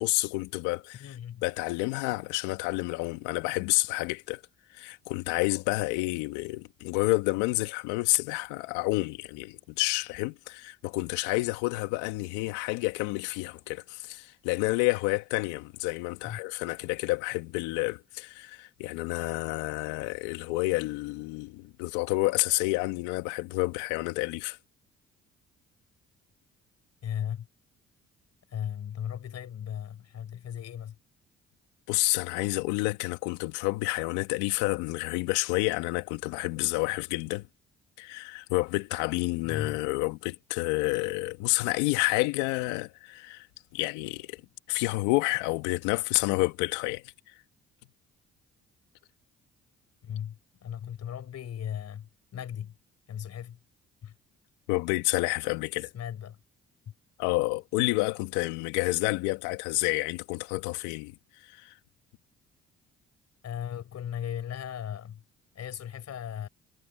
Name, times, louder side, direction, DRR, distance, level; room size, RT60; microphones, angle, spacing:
voice 1, 0.0-1.0 1.4-4.4 4.7-24.6 31.9-37.5 38.0-43.5 43.7-44.4 44.7-47.1 54.7-55.9 57.2-61.1 61.5-61.7, left 21 dB, 85° left, 2.0 m, -29 dB
voice 2, 1.0-1.4 16.2-16.4 27.0-27.5 28.5-31.0 39.4-39.8 50.0-52.7 53.1-53.6 54.0-54.1 55.9-56.4 63.4-65.2 65.5-66.5, left 9 dB, 60° left, 5.5 m, -37 dB
hypercardioid pair, 55°, 30 cm